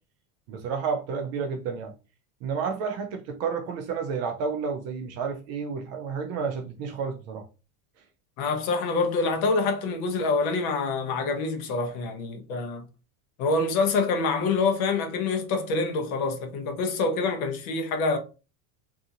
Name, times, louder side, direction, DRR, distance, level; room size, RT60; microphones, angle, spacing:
voice 1, 0.5-1.9 2.4-7.4, right 5 dB, 40° right, 0.4 m, -31 dB
voice 2, 8.4-12.8 13.4-18.2, left 3 dB, 75° left, 0.9 m, -26 dB
2.7 x 2.7 x 2.4 m
cardioid pair, 155°, 43 cm